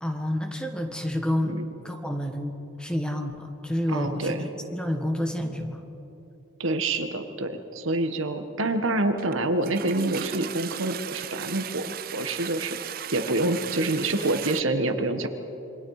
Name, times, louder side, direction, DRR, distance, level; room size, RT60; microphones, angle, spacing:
voice 1, 0.0-1.6 1.8-2.5 2.8-5.8, left 1 dB, 5° left, 4 dB, 1.5 m, -29 dB
voice 2, 3.9-4.4 6.6-15.3, right 2 dB, 80° right, 7 dB, 1.5 m, -27 dB
Toilet flush, 9.2-9.3 9.6-14.6, right 9 dB, 45° right, 0.4 m, -36 dB
27.5 x 23.5 x 5.0 m, 3.0 s
head